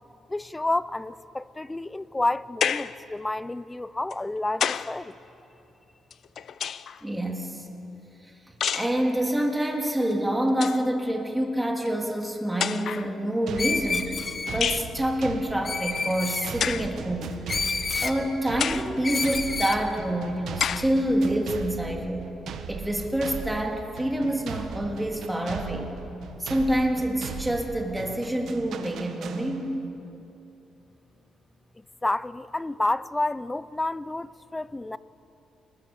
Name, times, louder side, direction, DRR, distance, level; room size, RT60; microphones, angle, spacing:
voice 1, 0.3-5.2 31.8-35.0, left 2 dB, 15° left, 0.6 m, -30 dB
sound 1, 2.6-3.0 4.1-5.0 6.1-7.0 8.6-9.0 10.1-10.2 10.5-10.9 11.9-12.0 12.6-13.1 14.6-14.9 16.6-16.9 17.6-17.7 18.6-18.9 19.6-19.7 20.6-20.9, left 8 dB, 60° left, 0.6 m, -29 dB
voice 2, 7.0-7.6 8.7-14.2 14.5-17.4 18.0-22.3 22.7-25.9 26.4-29.8, right 1 dB, 10° right, 3.0 m, -27 dB
sound 2, 13.5-29.9, right 6 dB, 70° right, 1.5 m, -39 dB
Screech, 13.6-14.6 15.6-16.5 17.5-18.2 19.0-19.8, left 4 dB, 35° left, 1.5 m, -29 dB
29.0 x 20.0 x 7.2 m
cardioid pair, 90°, 0 cm